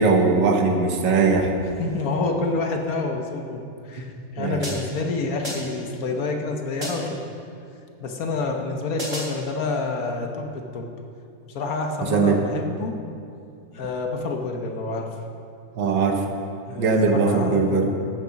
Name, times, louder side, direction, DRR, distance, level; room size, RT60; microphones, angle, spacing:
voice 1, 0.0-1.5 4.4-4.8 12.0-12.4 15.8-16.2 16.8-17.9, right 4 dB, 70° right, 4 dB, 1.6 m, -20 dB
voice 2, 1.8-7.3 8.0-10.9 11.5-13.0 13.7-15.1 16.7-18.0, left 3 dB, 55° left, 3 dB, 1.4 m, -28 dB
sound 1, 4.6-5.1 5.4-5.9 6.8-7.2 9.0-9.5, equal, 20° right, 2.6 m, -32 dB
14.5 x 6.7 x 5.8 m, 2.5 s
omnidirectional pair, 2.0 m